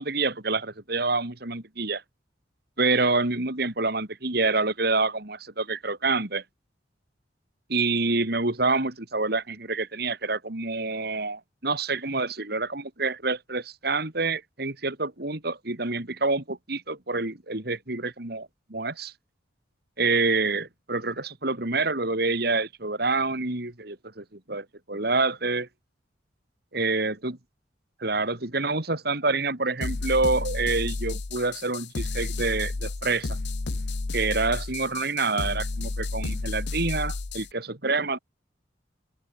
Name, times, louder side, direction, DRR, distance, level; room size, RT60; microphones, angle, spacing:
voice 1, 0.0-2.0 2.8-6.4 7.7-19.1 20.0-25.7 26.7-27.3 28.0-33.4 34.1-38.2, right 3 dB, 55° right, 2.5 m, -27 dB
sound 1, 29.8-37.5, left 3 dB, 65° left, 0.8 m, -31 dB
open air
head